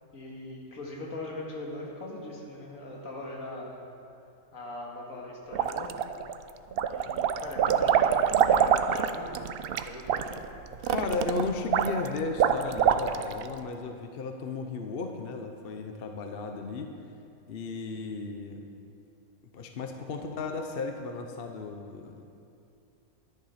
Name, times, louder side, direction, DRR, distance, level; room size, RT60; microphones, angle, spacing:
voice 1, 0.1-3.8 4.5-6.0 6.9-9.4 9.8-10.4, left 2 dB, 65° left, -2 dB, 2.2 m, -40 dB
sound 1, 5.5-6.3 6.7-13.4, right 8 dB, 80° right, 0.5 m, -25 dB
voice 2, 10.8-16.9 17.5-18.6 19.5-22.2, left 4 dB, 50° left, 4 dB, 0.9 m, -35 dB
11.5 x 11.0 x 5.7 m, 2.6 s
omnidirectional pair, 1.5 m